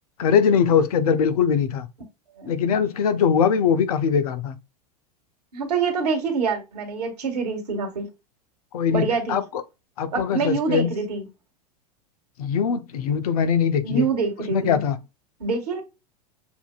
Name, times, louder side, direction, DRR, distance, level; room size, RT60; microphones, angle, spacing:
voice 1, 0.2-1.9 2.5-4.6 8.7-9.6 10.0-10.9 12.4-14.1 14.5-15.0, left 7 dB, 60° left, 0.8 m, -21 dB
voice 2, 2.4-2.8 5.5-8.1 8.9-9.4 10.1-11.2 13.8-14.8 15.4-15.8, right 4 dB, 70° right, 1.9 m, -26 dB
7.0 x 2.7 x 2.3 m
figure-of-eight pair, 90°, 21 cm